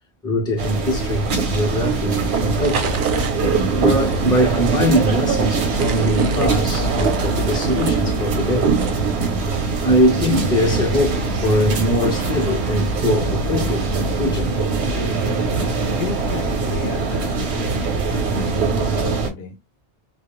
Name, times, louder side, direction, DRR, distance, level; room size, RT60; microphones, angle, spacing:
voice 1, 0.2-3.0 3.8-8.8 9.8-14.5, equal, 5° left, 0.6 m, -21 dB
sound 1, 0.6-19.3, right 4 dB, 85° right, 0.9 m, -22 dB
sound 2, 1.2-9.4, right 5 dB, 60° right, 0.6 m, -34 dB
voice 2, 15.9-19.6, left 6 dB, 70° left, 0.8 m, -34 dB
2.3 x 2.1 x 3.0 m
omnidirectional pair, 1.1 m